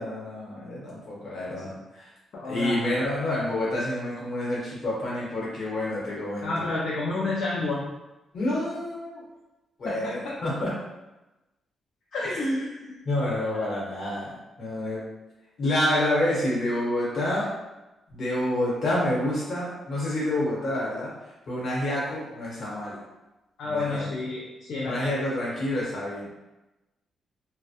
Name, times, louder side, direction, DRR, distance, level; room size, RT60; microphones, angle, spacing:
voice 1, 0.0-2.1 2.4-6.5 8.3-9.2 9.8-10.7 13.0-15.0 15.6-17.5 18.1-23.0 23.6-24.0 24.8-26.3, left 1 dB, 55° left, -5 dB, 0.9 m, -28 dB
voice 2, 2.3-2.9 6.4-7.9 9.8-10.4 12.1-13.0 23.6-25.1, left 2 dB, 70° left, -5 dB, 0.3 m, -30 dB
2.2 x 2.1 x 2.7 m, 1.0 s
cardioid pair, 135°, 0 cm